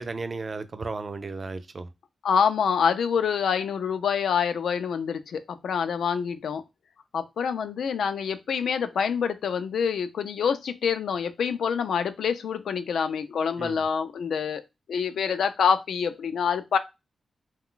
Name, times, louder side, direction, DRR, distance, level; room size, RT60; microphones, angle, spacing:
voice 1, 0.0-1.9 13.6-13.8, right 3 dB, 30° right, 0.3 m, -34 dB
voice 2, 2.2-6.6 7.1-14.6 14.9-16.8, left 6 dB, 85° left, 0.3 m, -26 dB
2.3 x 2.2 x 3.7 m
wide cardioid pair, 160°, 0 cm